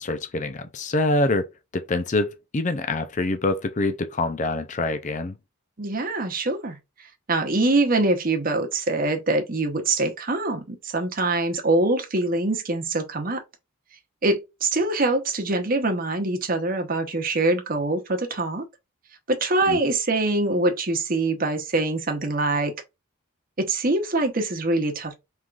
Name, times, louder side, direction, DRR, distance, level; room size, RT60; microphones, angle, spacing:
voice 1, 0.0-1.5 1.7-2.3 2.5-5.4 19.7-19.8, left 2 dB, 35° left, 0.5 m, -25 dB
voice 2, 5.8-6.8 7.3-13.4 14.2-18.6 19.3-22.7 23.6-25.2, right 2 dB, 40° right, 0.9 m, -24 dB
4.6 x 3.6 x 2.4 m
head